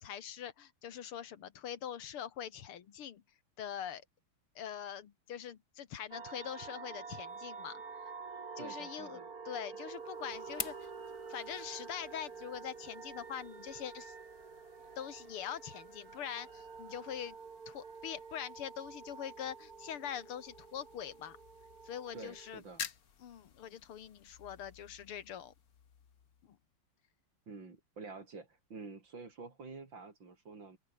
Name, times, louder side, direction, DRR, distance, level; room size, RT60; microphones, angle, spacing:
voice 1, 0.0-3.2 3.6-4.0 4.6-7.8 8.6-10.9 11.3-14.1 15.0-17.4 17.7-21.4 21.8-22.6 23.2-25.5, left 9 dB, 80° left, 2.4 m, -43 dB
sound 1, 6.1-22.6, right 5 dB, 45° right, 2.7 m, -48 dB
voice 2, 8.6-9.3 22.1-22.9 27.5-30.8, right 4 dB, 60° right, 4.5 m, -48 dB
sound 2, 9.7-26.7, left 7 dB, 45° left, 1.7 m, -52 dB
open air
omnidirectional pair, 2.4 m